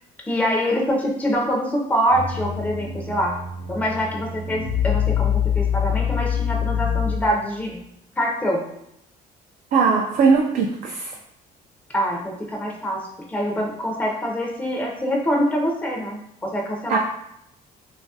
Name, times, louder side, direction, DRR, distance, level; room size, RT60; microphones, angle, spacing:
voice 1, 0.3-3.3 3.7-7.8 8.2-8.6 11.9-17.0, equal, 10° left, -1 dB, 0.5 m, -24 dB
sound 1, 2.1-7.5, left 8 dB, 60° left, 0.6 m, -25 dB
voice 2, 9.7-11.1 16.9-17.0, right 5 dB, 55° right, 0 dB, 0.4 m, -19 dB
2.9 x 2.3 x 2.7 m, 0.77 s
cardioid pair, 110°, 17 cm